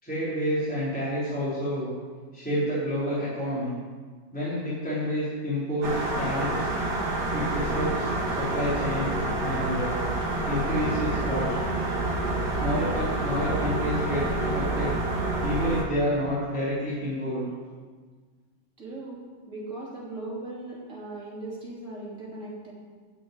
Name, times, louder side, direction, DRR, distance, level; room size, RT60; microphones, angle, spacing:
voice 1, 0.0-1.9 2.3-3.8 4.3-6.7 7.3-9.1 9.4-10.0 10.5-11.5 12.6-14.9 15.4-17.5, equal, 5° left, -10 dB, 3.2 m, -29 dB
sound 1, 5.8-15.8, right 2 dB, 55° right, 2.2 m, -28 dB
voice 2, 18.8-19.2 19.5-22.7, right 2 dB, 35° right, -5 dB, 3.4 m, -38 dB
9.9 x 6.3 x 8.9 m, 1.5 s
omnidirectional pair, 2.2 m